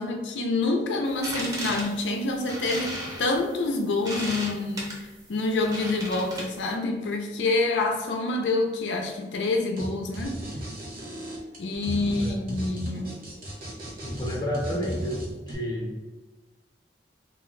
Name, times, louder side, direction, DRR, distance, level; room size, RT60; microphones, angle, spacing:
voice 1, 0.0-10.4 11.6-13.2, left 2 dB, 80° left, 3 dB, 0.4 m, -27 dB
sound 1, 1.1-6.7, right 1 dB, 20° right, 0.6 m, -36 dB
sound 2, 9.8-9.9 10.1-15.5, right 1 dB, 55° right, 0.9 m, -35 dB
voice 2, 14.0-15.2 15.5-15.9, equal, 25° left, -1 dB, 0.6 m, -30 dB
2.4 x 2.1 x 3.9 m, 1.2 s
head